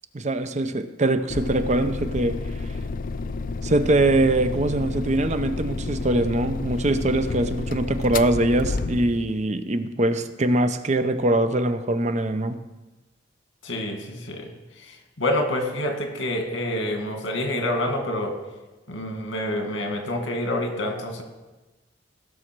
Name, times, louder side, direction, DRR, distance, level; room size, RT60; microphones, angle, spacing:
voice 1, 0.1-2.3 3.6-12.6, right 2 dB, 40° right, 9 dB, 0.6 m, -22 dB
sound 1, 1.3-9.3, left 3 dB, 45° left, 0.4 m, -30 dB
voice 2, 13.6-14.5 15.2-18.3 18.9-21.2, left 1 dB, 85° left, 3 dB, 2.0 m, -27 dB
17.0 x 6.3 x 4.6 m, 1.1 s
head